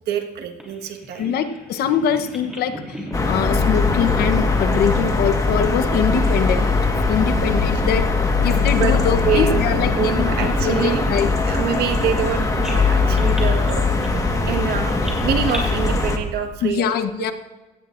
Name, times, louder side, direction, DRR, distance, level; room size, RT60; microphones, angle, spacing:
voice 1, 0.1-1.3 7.7-7.8 8.8-8.9 9.2-13.9 14.5-16.9, right 8 dB, 70° right, 4 dB, 1.5 m, -26 dB
Bird vocalization bird call bird song, 0.6-6.6 6.8-7.7 8.1-8.3 8.9-12.3 12.6-15.6, equal, 5° right, 3.3 m, -39 dB
voice 2, 1.2-2.7 3.2-6.7 7.1-8.0 8.4-11.3 16.6-17.3, left 8 dB, 70° left, 9 dB, 1.0 m, -23 dB
sound 1, 3.1-16.2, left 3 dB, 20° left, 1.5 m, -20 dB
17.0 x 14.5 x 2.6 m, 1.2 s
cardioid pair, 110°, 17 cm